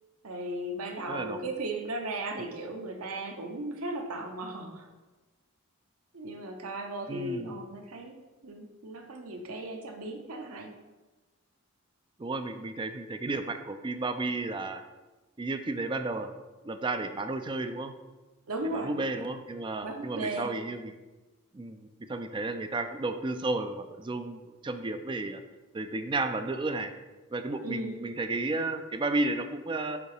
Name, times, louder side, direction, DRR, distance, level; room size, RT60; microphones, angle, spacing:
voice 1, 0.2-4.9 6.1-8.2 8.4-10.7 18.5-18.9 19.8-20.6 27.6-28.0, right 2 dB, 80° right, 4 dB, 0.8 m, -36 dB
voice 2, 1.1-1.4 7.1-7.6 12.2-14.8 15.4-17.9 18.7-20.9 21.5-25.4 25.7-26.9 27.3-30.0, right 2 dB, 20° right, 8 dB, 0.4 m, -33 dB
5.2 x 3.8 x 4.8 m, 1.2 s
head